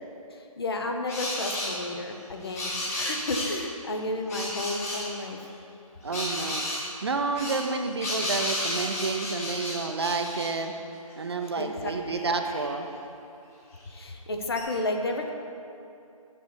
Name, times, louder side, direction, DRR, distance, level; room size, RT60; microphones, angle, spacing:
voice 1, 0.3-5.5 11.6-11.9 13.9-15.3, left 2 dB, 40° left, 3 dB, 0.9 m, -32 dB
sound 1, 1.1-1.7 2.4-3.6 4.3-5.1 6.1-6.8 7.4-10.5 11.1-11.2 11.4-12.6 13.9-14.0 14.6-14.7, left 1 dB, 25° left, 1.7 m, -32 dB
voice 2, 6.0-6.6 7.0-10.7 11.2-12.9, right 4 dB, 45° right, 5 dB, 0.6 m, -29 dB
6.7 x 6.5 x 6.9 m, 2.6 s
figure-of-eight pair, 165°, 19 cm